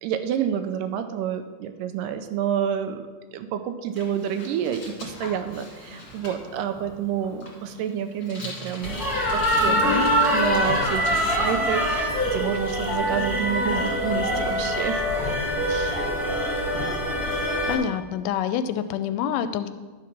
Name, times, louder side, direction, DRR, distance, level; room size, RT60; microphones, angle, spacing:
voice 1, 0.0-3.0 3.3-9.0 9.3-9.7 10.3-15.0 15.7-15.9, right 9 dB, 80° right, 8 dB, 2.1 m, -29 dB
Bicycle, 3.9-11.4, left 1 dB, 30° left, 1.9 m, -42 dB
sound 1, 8.8-17.8, equal, ahead, 1.6 m, -24 dB
voice 2, 9.7-10.0 17.7-19.7, left 9 dB, 80° left, 11 dB, 2.0 m, -27 dB
11.5 x 4.7 x 5.9 m, 1.3 s
omnidirectional pair, 3.9 m